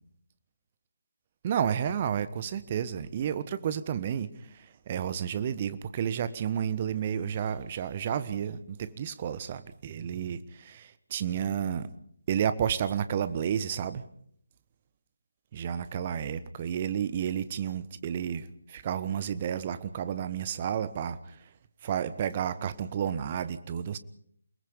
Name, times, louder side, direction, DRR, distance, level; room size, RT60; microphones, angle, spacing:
voice 1, 1.4-4.3 4.9-11.9 12.3-14.0 15.5-21.2 21.8-24.0, right 8 dB, 30° right, 14 dB, 1.2 m, -31 dB
28.5 x 19.5 x 5.3 m, 0.67 s
figure-of-eight pair, 150°, 0 cm